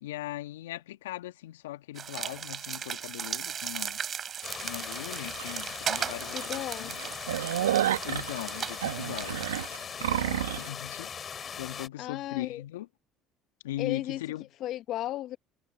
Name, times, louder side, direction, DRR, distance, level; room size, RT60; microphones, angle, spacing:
voice 1, 0.0-4.0 4.6-6.4 6.8-7.0 8.1-9.4 10.0-12.9 13.6-14.5, left 15 dB, 80° left, 1.7 m, -39 dB
sound 1, 2.0-9.7, right 8 dB, 45° right, 7.0 m, -37 dB
sound 2, 4.4-11.9, left 7 dB, 40° left, 6.6 m, -40 dB
sound 3, 5.4-5.5 6.0-6.1 6.4-6.6 6.9-10.7, right 12 dB, 85° right, 2.0 m, -30 dB
voice 2, 6.3-6.9 12.0-12.6 13.8-14.2 14.6-15.4, left 13 dB, 60° left, 1.1 m, -34 dB
hypercardioid pair, 60°, 0 cm